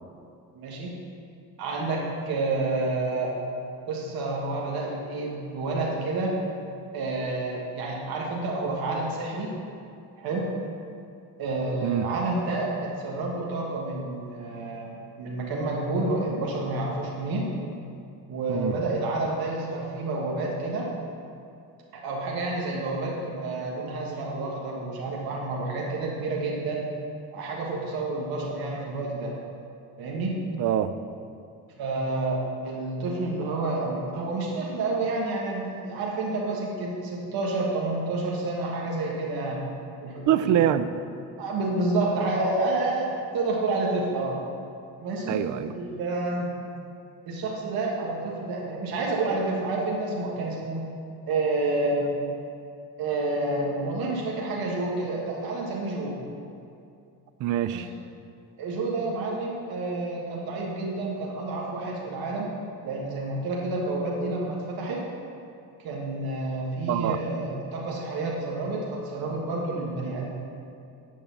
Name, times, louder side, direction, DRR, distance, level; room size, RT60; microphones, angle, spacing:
voice 1, 0.5-0.9 1.6-3.3 3.9-6.4 6.9-9.5 10.2-10.5 11.4-14.9 15.2-17.5 18.3-20.9 21.9-26.9 27.3-29.3 30.0-30.3 31.8-39.6 40.0-40.5 41.4-44.4 45.0-46.5 47.2-50.8 51.3-52.1 53.0-56.2 57.7-57.8 58.6-62.5 62.8-65.0 65.8-70.3, right 2 dB, 75° right, -3 dB, 1.6 m, -29 dB
voice 2, 30.5-30.9 40.3-40.9 45.3-45.7 57.4-57.9 66.9-67.2, right 10 dB, 55° right, 12 dB, 0.5 m, -24 dB
11.0 x 3.9 x 7.1 m, 2.5 s
cardioid pair, 120°, 36 cm